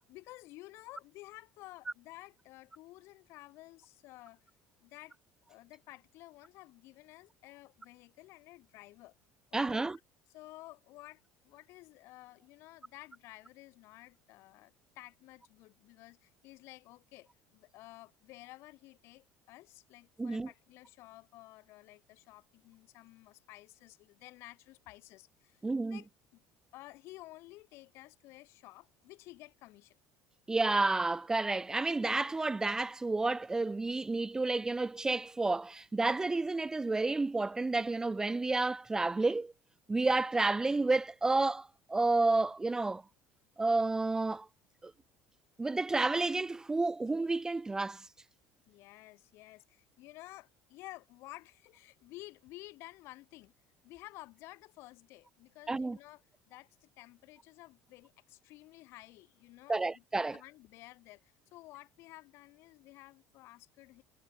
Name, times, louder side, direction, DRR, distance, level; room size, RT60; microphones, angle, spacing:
voice 1, 0.0-4.5 4.8-5.2 5.5-9.1 9.5-9.9 10.3-26.4 26.7-30.0 48.7-53.5 53.8-64.0, left 19 dB, 65° left, 1.8 m, -53 dB
voice 2, 9.5-10.0 20.2-20.5 25.6-26.0 30.5-39.5 39.9-43.0 43.6-44.5 45.6-48.0 55.7-56.0 59.7-60.4, right 3 dB, 15° right, 0.5 m, -30 dB
cardioid pair, 115°, 5 cm